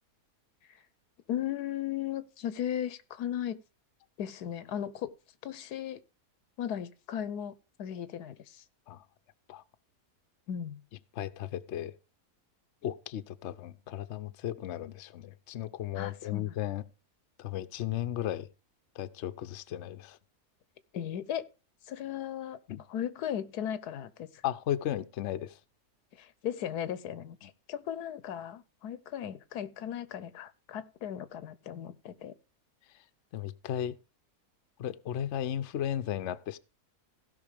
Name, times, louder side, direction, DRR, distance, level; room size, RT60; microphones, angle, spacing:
voice 1, 1.3-3.6 4.2-5.1 5.4-6.0 6.6-8.6 10.5-10.8 15.9-16.5 20.9-21.4 21.9-22.6 22.9-24.3 26.2-32.3, left 10 dB, 85° left, 1.3 m, -36 dB
voice 2, 11.1-12.0 12.8-16.9 17.4-18.5 18.9-20.2 22.7-22.8 24.4-25.6 27.4-27.5 33.3-34.0 34.8-36.6, left 11 dB, 55° left, 0.9 m, -35 dB
16.0 x 5.8 x 5.0 m
omnidirectional pair, 1.6 m